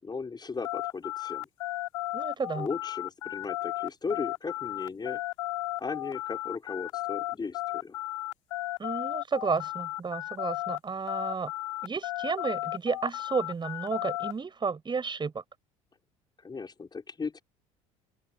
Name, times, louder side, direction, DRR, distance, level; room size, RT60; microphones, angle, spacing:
voice 1, 0.0-1.5 2.5-5.2 5.8-8.0 16.4-17.4, left 4 dB, 25° left, 6.3 m, -36 dB
sound 1, 0.6-10.8 11.1-14.3, left 18 dB, 75° left, 8.0 m, -34 dB
voice 2, 2.1-2.7 8.8-11.5 11.8-15.4, right 5 dB, 25° right, 7.3 m, -32 dB
open air
hypercardioid pair, 65°, 17 cm